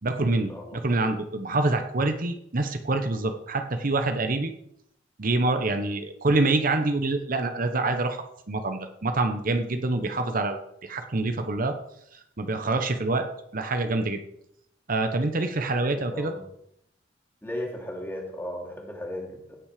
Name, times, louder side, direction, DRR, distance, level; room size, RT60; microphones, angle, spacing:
voice 1, 0.0-4.5 5.2-11.7 12.1-13.3 13.5-14.2 14.9-16.3, right 2 dB, 50° right, 7 dB, 0.9 m, -26 dB
voice 2, 15.8-16.4 17.4-19.6, left 1 dB, 10° left, -1 dB, 2.8 m, -36 dB
16.5 x 6.0 x 5.0 m, 0.75 s
head